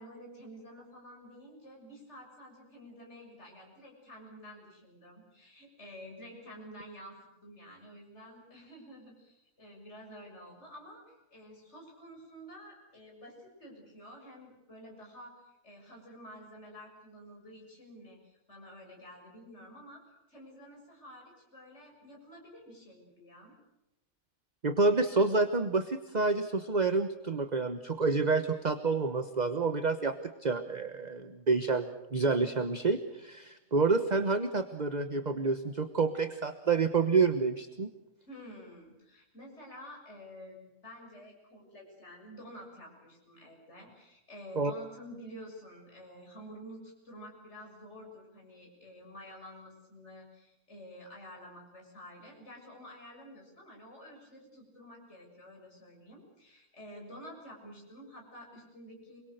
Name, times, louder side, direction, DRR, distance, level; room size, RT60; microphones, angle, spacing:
voice 1, 0.0-7.2 7.4-20.0 20.3-23.5 38.3-59.2, equal, 50° left, 0 dB, 7.4 m, -50 dB
voice 2, 24.6-30.2 30.4-37.9 44.5-44.7, right 4 dB, 35° right, 9 dB, 1.2 m, -28 dB
28.0 x 22.5 x 6.6 m, 0.93 s
omnidirectional pair, 1.5 m